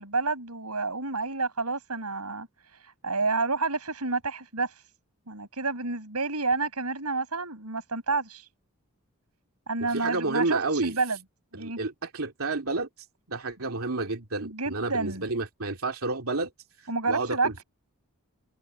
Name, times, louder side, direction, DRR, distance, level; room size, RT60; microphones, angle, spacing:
voice 1, 0.0-4.9 5.3-8.5 9.7-11.2 11.5-11.8 14.4-15.2 16.9-17.5, right 3 dB, 90° right, 7.6 m, -29 dB
voice 2, 9.8-11.0 11.5-16.5 16.8-17.6, right 3 dB, 70° right, 3.0 m, -30 dB
head